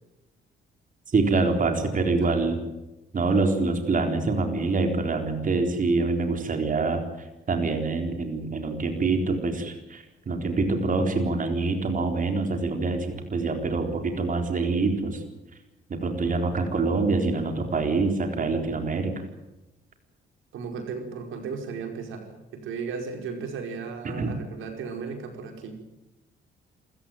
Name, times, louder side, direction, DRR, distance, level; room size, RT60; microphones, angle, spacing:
voice 1, 1.1-2.6 3.1-15.2 15.9-19.1 24.0-24.3, right 3 dB, 40° right, 5 dB, 4.1 m, -25 dB
voice 2, 20.5-25.8, right 5 dB, 85° right, 4 dB, 4.9 m, -35 dB
27.0 x 15.0 x 9.2 m, 1.0 s
cardioid pair, 90°, 20 cm